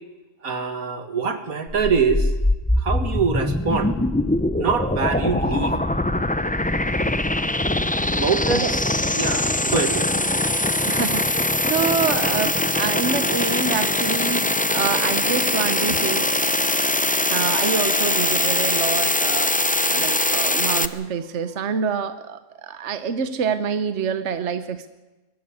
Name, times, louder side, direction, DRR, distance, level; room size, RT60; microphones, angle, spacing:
voice 1, 0.4-2.3 2.8-3.9 4.6-5.8 8.1-8.7 9.1-10.1, right 5 dB, 75° right, 9 dB, 2.2 m, -24 dB
sound 1, 1.7-20.9, left 1 dB, 10° left, 0.4 m, -22 dB
voice 2, 10.9-16.3 17.3-19.5 19.9-24.9, right 6 dB, 55° right, 11 dB, 1.2 m, -26 dB
23.5 x 14.0 x 9.6 m, 1.1 s
omnidirectional pair, 1.5 m